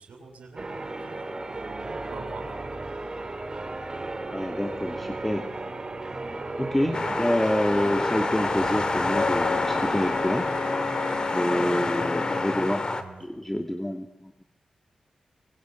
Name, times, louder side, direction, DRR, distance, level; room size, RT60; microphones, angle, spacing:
voice 1, 0.0-1.3 1.8-2.5 5.0-5.2 6.9-7.2 11.5-13.3, right 4 dB, 80° right, 4 dB, 6.9 m, -44 dB
Church bell, 0.6-12.8, right 2 dB, 35° right, 3.5 m, -35 dB
voice 2, 4.3-5.5 6.6-10.5 11.3-12.9 13.2-14.4, left 1 dB, 10° left, 4 dB, 2.6 m, -27 dB
sound 1, 6.9-13.0, left 3 dB, 40° left, 2.4 m, -28 dB
Wind instrument woodwind instrument, 9.1-12.6, left 5 dB, 70° left, 7.9 m, -33 dB
24.5 x 23.5 x 9.5 m, 0.93 s
cardioid pair, 65°, 2 cm